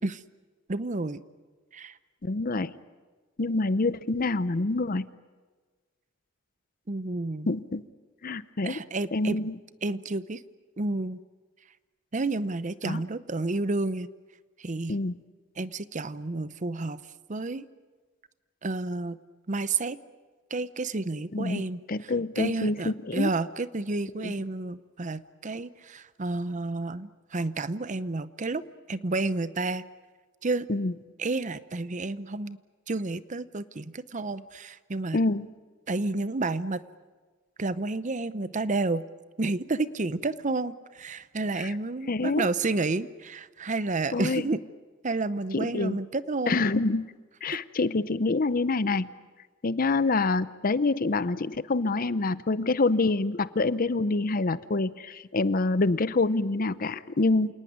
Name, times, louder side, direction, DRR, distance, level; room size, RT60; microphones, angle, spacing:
voice 1, 0.7-1.2 1.7-2.0 6.9-7.5 8.6-9.4 9.8-10.4 10.8-11.2 12.1-14.1 14.6-14.9 15.6-17.0 17.3-17.7 18.6-19.2 19.5-20.0 20.5-28.6 28.9-29.8 30.4-30.7 31.2-32.6 32.9-35.2 35.9-36.8 37.6-39.0 39.4-44.6 45.0-46.6 47.5-47.6, right 3 dB, 40° right, 15 dB, 0.7 m, -30 dB
voice 2, 2.2-2.8 3.4-5.1 7.5-7.8 8.2-8.8 9.1-9.5 12.8-13.0 14.9-15.1 21.3-23.3 24.1-24.3 30.7-30.9 35.1-35.5 41.6-41.7 42.1-42.5 44.1-44.4 45.5-46.0 46.5-47.1 47.4-49.1 49.6-57.5, left 3 dB, 45° left, 16 dB, 0.7 m, -26 dB
28.0 x 19.0 x 9.4 m, 1.4 s
head